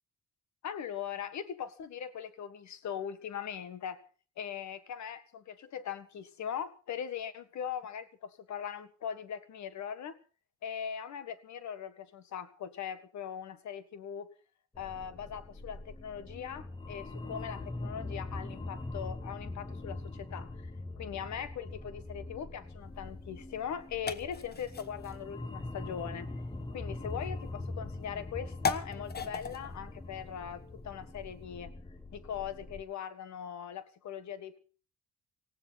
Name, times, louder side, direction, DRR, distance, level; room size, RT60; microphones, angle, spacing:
voice 1, 0.6-4.0 4.4-10.2 10.6-14.3 14.8-20.7 21.0-26.3 26.7-31.7 32.1-34.6, left 8 dB, 65° left, 12 dB, 1.8 m, -40 dB
sound 1, 14.7-32.8, left 2 dB, 15° left, 1.2 m, -42 dB
sound 2, 22.8-31.4, left 5 dB, 35° left, 1.2 m, -41 dB
18.5 x 16.0 x 4.2 m, 0.40 s
cardioid pair, 90°, 30 cm